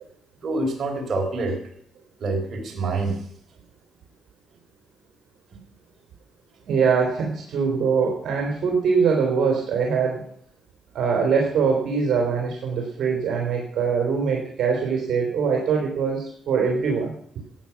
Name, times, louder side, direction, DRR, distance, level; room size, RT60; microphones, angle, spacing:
voice 1, 0.4-1.6 2.2-3.2, right 2 dB, 50° right, 2 dB, 4.5 m, -26 dB
voice 2, 6.7-10.3 10.9-17.1, right 5 dB, 65° right, 0 dB, 3.5 m, -23 dB
14.5 x 9.2 x 5.9 m, 0.65 s
cardioid pair, 90°, 0 cm